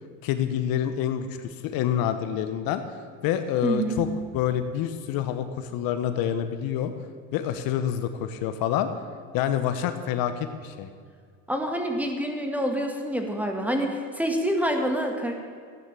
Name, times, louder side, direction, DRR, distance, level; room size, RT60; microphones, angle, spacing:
voice 1, 0.2-2.8 3.2-4.1 4.3-6.9 7.3-8.9 9.3-10.9, left 10 dB, 60° left, 9 dB, 1.0 m, -27 dB
voice 2, 3.6-4.0 11.5-15.3, right 1 dB, 5° right, 3 dB, 1.9 m, -27 dB
13.5 x 9.5 x 7.5 m, 2.1 s
supercardioid pair, 100°, 40 cm